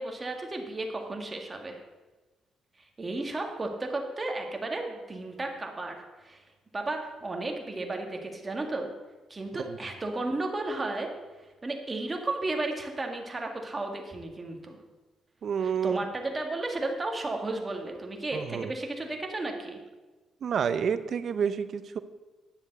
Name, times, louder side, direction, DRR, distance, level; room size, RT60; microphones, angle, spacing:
voice 1, 0.0-1.8 3.0-6.4 6.7-8.9 9.3-11.1 11.6-14.8 15.6-19.8, right 2 dB, 25° right, 3 dB, 1.9 m, -33 dB
voice 2, 15.4-16.0 18.3-18.7 20.4-22.0, right 7 dB, 55° right, 13 dB, 0.7 m, -29 dB
10.5 x 7.1 x 6.7 m, 1.2 s
cardioid pair, 90°, 0 cm